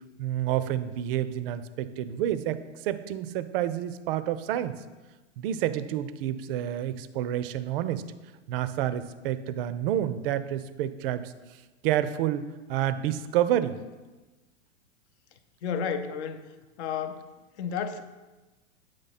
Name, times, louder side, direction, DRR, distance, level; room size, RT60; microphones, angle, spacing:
voice 1, 0.2-4.7 5.4-8.0 8.5-11.3 11.8-13.8, right 11 dB, 50° right, 13 dB, 0.4 m, -29 dB
voice 2, 15.6-16.4 16.8-17.3 17.6-18.0, left 7 dB, 60° left, 8 dB, 0.7 m, -31 dB
8.2 x 3.2 x 4.1 m, 1.2 s
hypercardioid pair, 110°, 38 cm